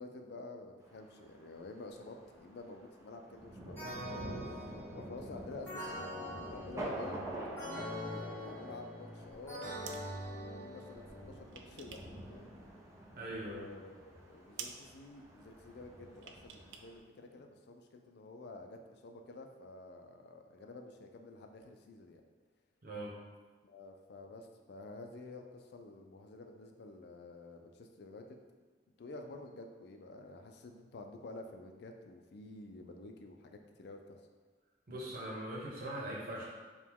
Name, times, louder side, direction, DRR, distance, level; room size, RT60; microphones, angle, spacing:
voice 1, 0.0-9.8 10.5-12.0 12.3-12.5 13.4-22.2 23.6-28.4 29.0-34.2, left 2 dB, 65° left, 4 dB, 0.4 m, -50 dB
Thunder, 0.8-17.0, right 1 dB, 15° right, 0.6 m, -48 dB
sound 1, 3.8-11.4, equal, 15° left, 1.4 m, -44 dB
sound 2, 9.4-10.1 11.1-12.2 12.5-13.4 13.7-13.8 14.2-14.3 14.5-14.8 16.2-16.9 17.1-17.2, right 7 dB, 75° right, 0.4 m, -49 dB
voice 2, 13.1-13.7 22.8-23.1 34.9-36.5, right 1 dB, 50° right, -5 dB, 1.0 m, -41 dB
4.8 x 2.2 x 3.6 m, 1.4 s
head